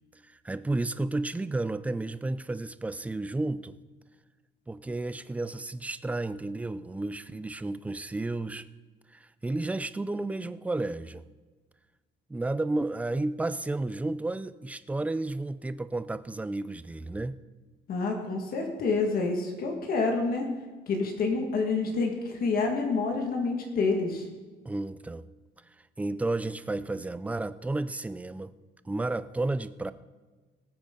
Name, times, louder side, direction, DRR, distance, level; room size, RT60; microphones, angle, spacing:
voice 1, 0.4-3.8 4.7-8.6 9.1-11.2 12.3-17.4 24.7-25.2 26.0-28.5 28.9-29.9, right 2 dB, 5° right, 14 dB, 0.3 m, -32 dB
voice 2, 17.9-20.5 20.9-24.3, left 3 dB, 50° left, 2 dB, 1.8 m, -28 dB
19.0 x 9.2 x 3.8 m, 1.3 s
cardioid pair, 160°, 19 cm